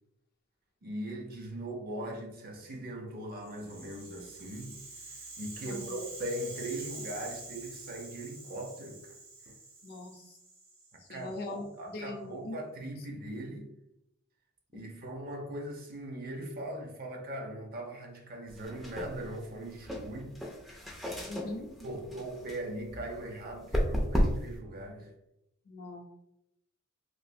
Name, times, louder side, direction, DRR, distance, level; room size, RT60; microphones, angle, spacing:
voice 1, 0.8-4.8 5.1-9.1 9.5-9.6 10.9-13.7 14.7-20.4 21.8-25.1, right 1 dB, 45° right, 0.5 m, -40 dB
Rattle (instrument), 3.4-11.6, right 3 dB, 75° right, 0.9 m, -47 dB
voice 2, 5.7-6.0 9.8-10.4 11.0-12.6 14.7-14.9 21.3-21.7 25.6-26.0, left 2 dB, 50° left, 0.6 m, -41 dB
sound 1, 18.5-24.6, equal, ahead, 0.4 m, -34 dB
3.2 x 2.5 x 2.6 m
head